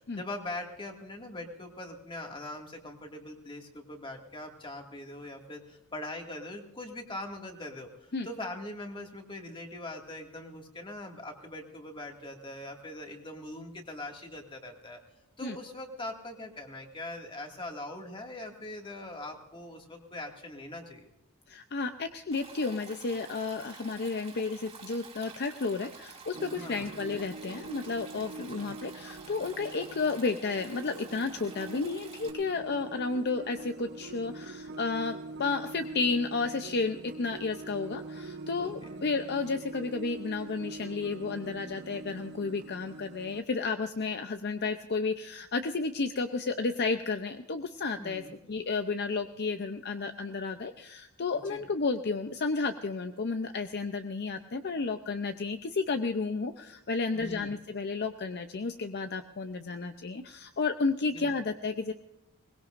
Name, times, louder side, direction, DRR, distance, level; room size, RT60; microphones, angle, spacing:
voice 1, 0.1-15.0 15.4-21.1 26.5-26.9 28.4-28.7 38.6-39.0 48.0-48.4 51.3-51.6 57.1-57.6 61.1-61.3, left 1 dB, 25° left, 2 dB, 2.1 m, -42 dB
voice 2, 21.5-48.2 48.5-61.9, left 4 dB, 50° left, 8 dB, 0.6 m, -32 dB
Stream, 22.3-32.3, right 5 dB, 30° right, 2.8 m, -50 dB
sound 1, 26.3-43.4, right 3 dB, 50° right, 0.9 m, -44 dB
22.0 x 20.0 x 2.6 m, 0.93 s
head